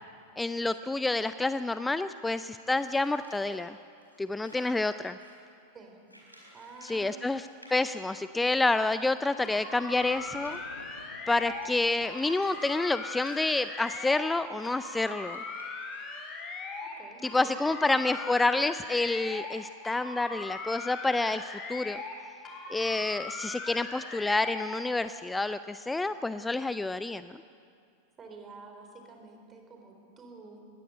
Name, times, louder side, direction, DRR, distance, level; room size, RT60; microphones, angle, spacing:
voice 1, 0.4-3.8 4.2-5.2 6.8-10.6 11.3-15.4 17.3-22.0 22.7-27.4, left 2 dB, 10° left, 13 dB, 0.4 m, -28 dB
sound 1, 2.6-5.5 6.1-7.1 7.4-7.7 8.4-8.5 8.7-8.8 9.4-12.7 13.1-16.4, equal, 90° right, 4.6 m, -54 dB
voice 2, 6.5-7.4 16.8-17.7 23.6-23.9 28.2-30.7, right 3 dB, 20° right, 3 dB, 3.9 m, -49 dB
sound 2, 9.2-12.9, left 3 dB, 80° left, 1.1 m, -51 dB
sound 3, 9.4-11.8 12.0-14.4 14.6-17.0 17.2-19.6 19.8-22.2 22.5-24.8, left 3 dB, 25° left, 3.5 m, -40 dB
20.5 x 17.0 x 8.1 m, 2.3 s
figure-of-eight pair, 90°, 0 cm